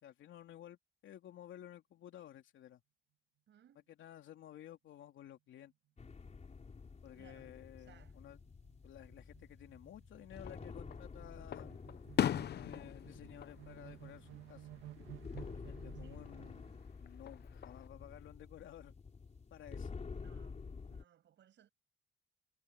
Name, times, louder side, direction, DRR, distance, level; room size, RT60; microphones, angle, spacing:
voice 1, 0.0-2.8 3.9-5.7 7.0-8.4 8.8-11.7 12.5-14.7 15.7-16.7 17.0-18.9 19.5-19.9, left 11 dB, 75° left, 3.2 m, -54 dB
voice 2, 3.5-3.9 7.1-8.2 16.0-16.3 20.1-20.6 20.9-21.7, right 10 dB, 65° right, 6.6 m, -65 dB
sound 1, 6.0-21.0, left 5 dB, 35° left, 4.2 m, -50 dB
sound 2, 7.1-16.8, right 15 dB, 85° right, 1.6 m, -56 dB
Fireworks, 10.3-11.0 11.5-14.6 15.0-15.5 17.1-17.9, left 10 dB, 55° left, 0.8 m, -39 dB
cardioid pair, 90°, 20 cm